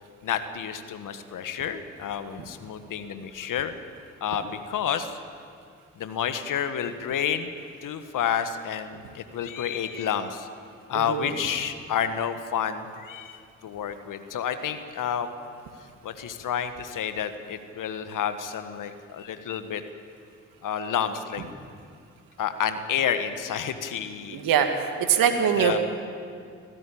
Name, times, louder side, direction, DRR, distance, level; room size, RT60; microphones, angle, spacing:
voice 1, 0.2-3.7 4.2-5.2 6.0-7.5 7.8-10.5 10.9-15.3 16.0-19.8 20.6-21.4 22.4-24.4 25.6-25.8, left 8 dB, 60° left, 10 dB, 1.5 m, -30 dB
voice 2, 10.9-11.3 24.3-25.8, right 8 dB, 70° right, 6 dB, 2.1 m, -23 dB
24.5 x 17.0 x 8.6 m, 2.3 s
hypercardioid pair, 40°, 36 cm